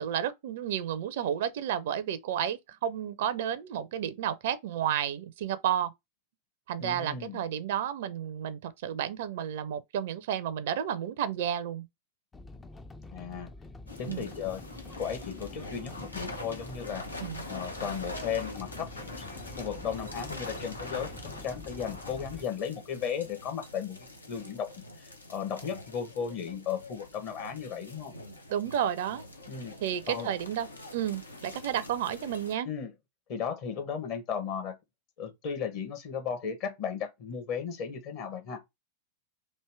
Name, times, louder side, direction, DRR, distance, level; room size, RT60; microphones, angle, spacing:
voice 1, 0.0-5.9 6.7-11.8 14.1-14.3 17.2-17.4 28.5-29.2 29.8-32.7, right 10 dB, 55° right, 0.4 m, -31 dB
voice 2, 6.8-7.4 13.1-13.5 14.0-14.6 14.9-17.0 17.5-18.9 19.2-19.3 19.6-28.1 29.5-29.8 30.1-30.3 32.6-32.9 33.3-34.8 35.2-38.6, left 7 dB, 45° left, 1.1 m, -35 dB
sound 1, 12.3-22.4, left 2 dB, 15° left, 0.4 m, -47 dB
sound 2, 13.9-32.5, left 2 dB, 80° left, 0.7 m, -44 dB
3.3 x 2.7 x 4.6 m
figure-of-eight pair, 90°, 0 cm